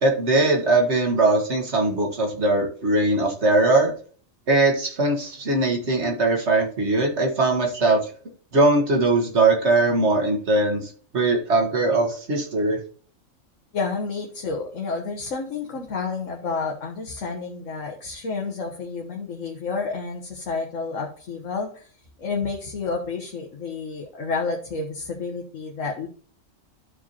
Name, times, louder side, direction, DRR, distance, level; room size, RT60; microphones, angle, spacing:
voice 1, 0.0-3.9 4.5-8.0 8.5-12.8, right 2 dB, 55° right, 2 dB, 2.1 m, -20 dB
voice 2, 13.7-21.9 22.2-26.1, left 4 dB, 75° left, 0 dB, 1.5 m, -30 dB
13.5 x 4.9 x 2.9 m, 0.43 s
omnidirectional pair, 1.4 m